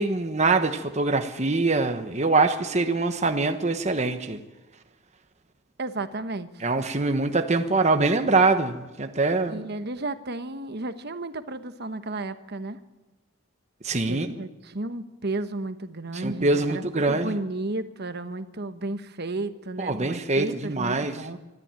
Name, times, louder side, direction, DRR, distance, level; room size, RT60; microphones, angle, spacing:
voice 1, 0.0-4.4 6.6-9.6 13.8-14.3 16.1-17.3 19.8-21.2, right 3 dB, 35° right, 7 dB, 1.1 m, -24 dB
voice 2, 5.8-6.6 9.5-12.8 14.1-21.4, right 2 dB, 50° right, 10 dB, 1.2 m, -33 dB
24.5 x 13.5 x 9.0 m, 1.1 s
head